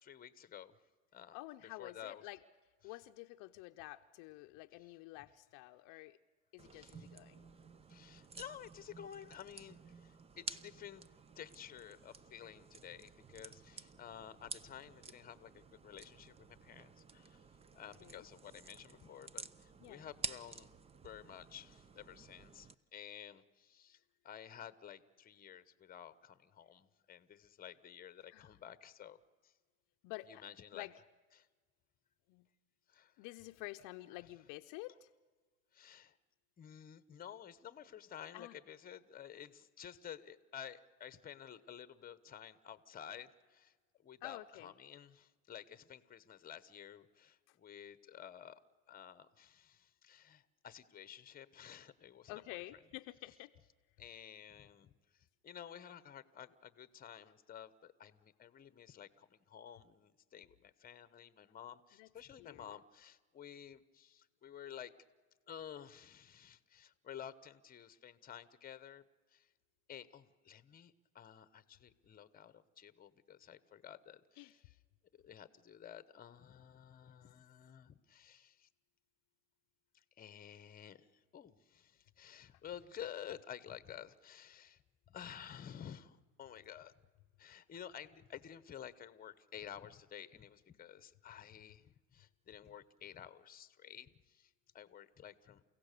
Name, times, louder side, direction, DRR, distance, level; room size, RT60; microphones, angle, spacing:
voice 1, 0.0-0.7 1.1-1.4 1.8-2.2 6.7-7.1 7.9-11.1 11.4-17.5 17.7-20.7 21.0-29.2 29.4-29.5 30.3-30.9 31.4-31.5 32.9-33.2 35.7-36.2 36.6-43.7 44.0-48.6 48.9-52.3 54.0-64.9 65.5-69.0 69.3-69.5 69.9-74.6 75.1-78.7 79.9-84.8 85.1-86.9 87.4-95.6, left 9 dB, 25° left, 15 dB, 1.1 m, -52 dB
voice 2, 1.3-2.4 2.8-6.2 6.5-7.5 18.0-18.2 19.8-20.1 28.3-28.5 30.0-30.4 30.7-30.9 32.3-32.5 33.2-35.1 38.3-38.6 44.2-44.7 47.5-47.6 52.3-53.5 62.0-62.1 62.4-62.8 74.4-74.5, left 19 dB, 55° left, 7 dB, 0.8 m, -50 dB
sound 1, 6.6-22.8, right 5 dB, 15° right, 0.6 m, -51 dB
29.5 x 16.5 x 6.8 m, 1.4 s
supercardioid pair, 115°, 38 cm